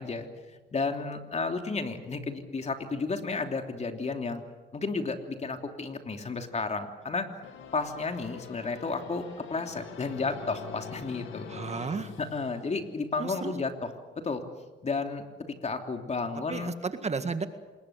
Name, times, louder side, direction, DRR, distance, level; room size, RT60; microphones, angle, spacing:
voice 1, 0.0-4.4 4.7-7.3 7.7-11.5 12.2-13.7 14.1-14.4 14.8-16.7, left 4 dB, 35° left, 5 dB, 3.1 m, -32 dB
sound 1, 7.4-13.1, left 7 dB, 80° left, 2.4 m, -44 dB
voice 2, 11.5-12.1 13.2-13.6 16.5-17.5, right 4 dB, 35° right, 9 dB, 1.8 m, -33 dB
26.5 x 21.0 x 7.6 m, 1.3 s
cardioid pair, 90°, 20 cm